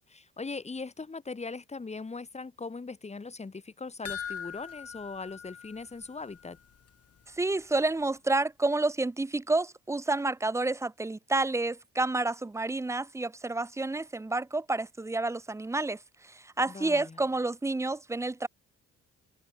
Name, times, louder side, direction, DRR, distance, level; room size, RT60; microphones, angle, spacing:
voice 1, 0.0-6.6 16.7-17.2, left 4 dB, 20° left, 1.7 m, -40 dB
sound 1, 4.1-6.6 6.9-7.0 7.4-7.5, left 8 dB, 50° left, 6.3 m, -41 dB
voice 2, 7.4-16.0 16.2-18.5, right 2 dB, 10° right, 0.5 m, -29 dB
cardioid pair, 90°, 30 cm